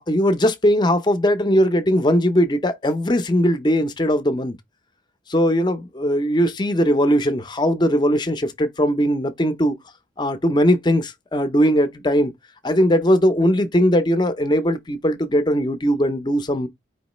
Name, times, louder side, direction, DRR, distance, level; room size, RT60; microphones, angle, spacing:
voice 1, 0.0-4.6 5.3-9.8 10.2-12.3 12.6-16.7, equal, 25° left, 0.5 m, -19 dB
4.5 x 3.1 x 3.0 m
head